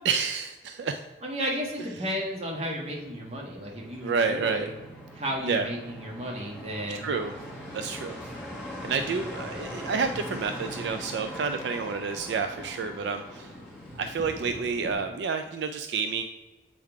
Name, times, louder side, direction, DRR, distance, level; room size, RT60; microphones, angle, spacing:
voice 1, 0.0-1.0 4.0-4.7 5.4-5.7 6.9-7.3 7.7-8.3 8.8-13.5 14.0-16.2, right 5 dB, 70° right, 8 dB, 0.3 m, -29 dB
voice 2, 1.2-4.7 5.1-7.1, equal, 35° right, -1 dB, 1.3 m, -33 dB
sound 1, 1.5-14.9, equal, 5° right, 1.3 m, -41 dB
7.5 x 3.6 x 4.6 m, 1.2 s
head